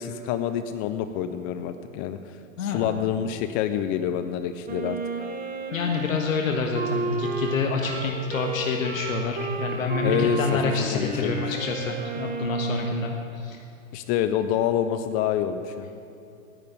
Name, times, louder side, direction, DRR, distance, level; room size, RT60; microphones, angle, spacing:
voice 1, 0.0-5.0 10.0-11.4 13.9-15.9, left 9 dB, 25° left, 10 dB, 0.3 m, -27 dB
voice 2, 2.6-2.9 5.7-13.6, left 4 dB, 80° left, 3 dB, 1.4 m, -27 dB
Wind instrument woodwind instrument, 4.7-13.1, right 3 dB, 20° right, 1.8 m, -32 dB
10.5 x 9.0 x 9.8 m, 2.7 s
hypercardioid pair, 120°, 40 cm